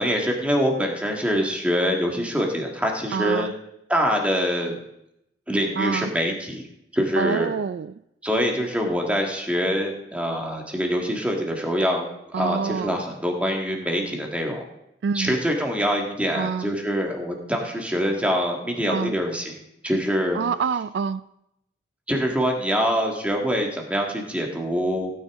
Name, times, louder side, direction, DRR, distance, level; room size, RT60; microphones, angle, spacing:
voice 1, 0.0-3.5 3.9-4.8 5.5-6.7 6.9-7.5 8.2-14.6 15.1-19.6 19.8-20.4 22.1-25.1, equal, 10° right, 1 dB, 1.6 m, -24 dB
voice 2, 3.1-3.5 5.8-6.1 7.2-7.9 12.3-13.0 15.0-15.3 16.4-16.7 18.9-19.2 20.3-21.2, right 6 dB, 70° right, 16 dB, 0.3 m, -26 dB
16.5 x 9.3 x 3.6 m, 0.81 s
head